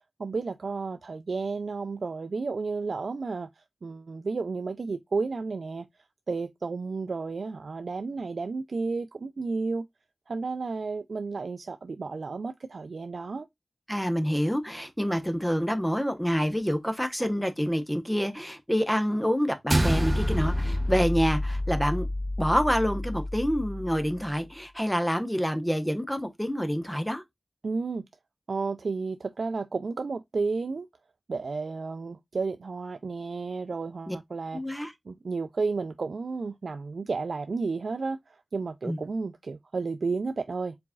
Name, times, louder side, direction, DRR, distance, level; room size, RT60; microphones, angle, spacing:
voice 1, 0.2-5.9 6.3-9.9 10.3-13.5 27.6-28.1 28.5-30.9 31.3-40.8, right 4 dB, 75° right, 0.3 m, -32 dB
voice 2, 13.9-22.1 22.4-27.2 34.1-34.2 34.5-34.9 38.8-39.0, equal, 5° left, 0.9 m, -27 dB
sound 1, 19.7-24.3, equal, 30° right, 0.7 m, -28 dB
4.6 x 4.1 x 2.3 m
wide cardioid pair, 85°, 0 cm